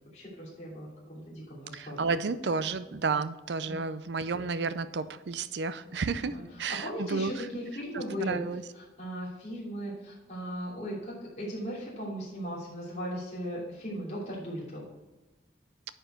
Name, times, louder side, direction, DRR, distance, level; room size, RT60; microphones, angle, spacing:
voice 1, 0.1-2.0 3.1-3.2 3.6-3.9 6.3-8.4 8.7-14.8, equal, 40° left, -6 dB, 3.0 m, -38 dB
voice 2, 1.7-7.3 7.9-8.6, right 4 dB, 80° right, 14 dB, 0.5 m, -32 dB
9.7 x 4.5 x 4.5 m, 1.1 s
head